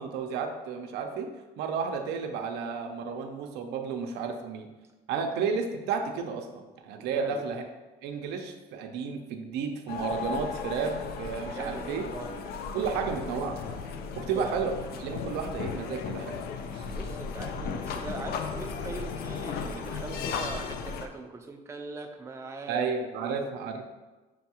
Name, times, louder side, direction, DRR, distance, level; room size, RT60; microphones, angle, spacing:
voice 1, 0.0-4.7 5.1-7.6 8.0-12.1 12.7-13.6 14.2-14.7 15.0-16.4 16.7-16.9 22.7-23.9, right 5 dB, 85° right, 4 dB, 0.5 m, -32 dB
voice 2, 7.0-7.4 11.5-12.3 12.9-13.1 14.2-14.5 16.9-22.9 23.2-23.4, right 3 dB, 15° right, 3 dB, 0.4 m, -41 dB
sound 1, 9.9-21.1, left 5 dB, 70° left, 0.4 m, -35 dB
6.2 x 2.3 x 2.9 m, 1.2 s
cardioid pair, 110°, 17 cm